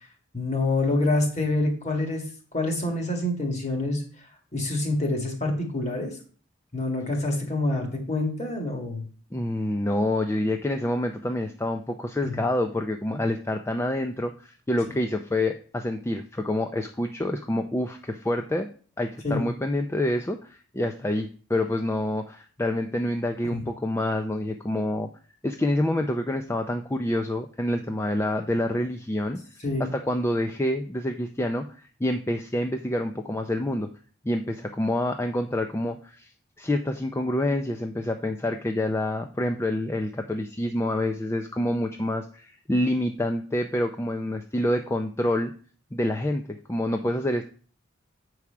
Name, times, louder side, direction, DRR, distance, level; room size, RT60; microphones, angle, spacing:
voice 1, 0.3-2.2 2.5-4.0 4.5-6.1 6.7-9.0 12.2-12.4 19.2-19.5 23.5-23.6 29.6-29.9, left 2 dB, 35° left, 2 dB, 2.1 m, -26 dB
voice 2, 9.3-18.7 19.0-25.1 25.4-33.9 34.2-36.3 36.6-45.5 45.9-47.4, left 1 dB, 15° left, 5 dB, 0.4 m, -27 dB
8.5 x 4.7 x 5.8 m, 0.43 s
head